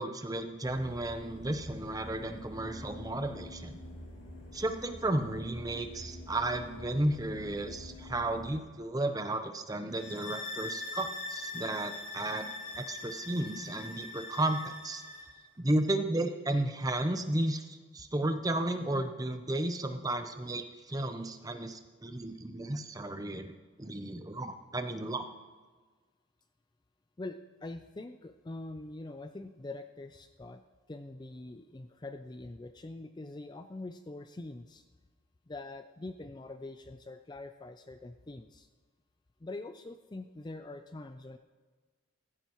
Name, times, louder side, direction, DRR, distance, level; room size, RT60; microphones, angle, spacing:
voice 1, 0.0-3.8 4.5-12.5 12.8-15.0 15.6-23.5 23.8-25.3, right 1 dB, 15° right, 7 dB, 0.7 m, -33 dB
sound 1, 0.6-8.6, left 1 dB, 55° left, 2.8 m, -47 dB
sound 2, 9.9-15.3, left 2 dB, 40° left, 3.5 m, -42 dB
voice 2, 27.2-30.6 30.9-34.8 35.5-38.7 39.4-41.4, left 2 dB, 20° left, 8 dB, 0.4 m, -44 dB
15.5 x 15.0 x 3.0 m, 1.4 s
head